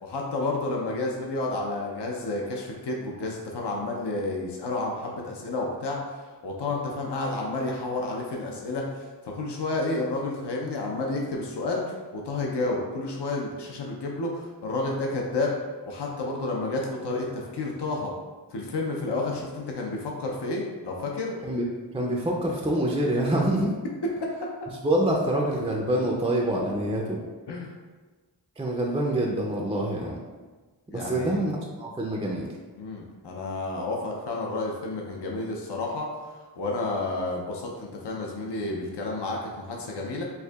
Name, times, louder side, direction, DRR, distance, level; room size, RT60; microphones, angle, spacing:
voice 1, 0.0-6.0 6.4-11.8 12.1-15.6 15.9-18.1 18.5-21.4 27.5-27.7 30.9-31.4 32.8-40.2, left 2 dB, 70° left, -1 dB, 0.6 m, -30 dB
voice 2, 21.9-23.7 24.8-27.2 28.6-30.2 30.9-32.5, right 1 dB, 15° right, -2 dB, 0.4 m, -26 dB
4.6 x 2.6 x 2.3 m, 1.3 s
wide cardioid pair, 60°, 42 cm